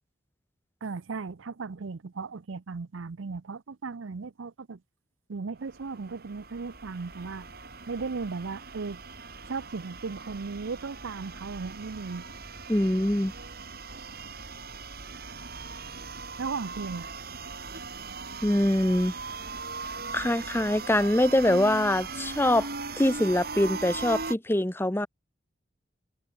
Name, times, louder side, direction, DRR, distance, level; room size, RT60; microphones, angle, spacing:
voice 1, 0.8-4.8 5.3-7.5 7.9-9.0 9.5-12.2 16.4-17.1, right 4 dB, 90° right, 0.6 m, -36 dB
sound 1, 5.6-24.3, right 4 dB, 50° right, 4.8 m, -39 dB
voice 2, 12.7-13.3 18.4-19.1 20.1-22.7 23.0-25.1, left 1 dB, 10° left, 0.9 m, -24 dB
head